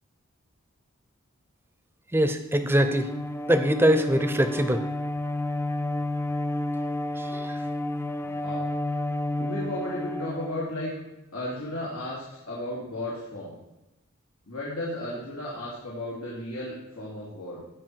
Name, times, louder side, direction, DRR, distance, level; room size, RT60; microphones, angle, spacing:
voice 1, 2.1-3.1 3.5-4.8 7.2-7.6, equal, 10° right, 8 dB, 0.7 m, -23 dB
Bowed string instrument, 2.6-11.1, left 1 dB, 10° left, 0.4 m, -31 dB
voice 2, 8.2-8.6 9.4-10.9 11.3-13.6 14.5-17.6, left 1 dB, 90° left, -6 dB, 2.6 m, -34 dB
16.5 x 5.6 x 4.6 m, 0.95 s
head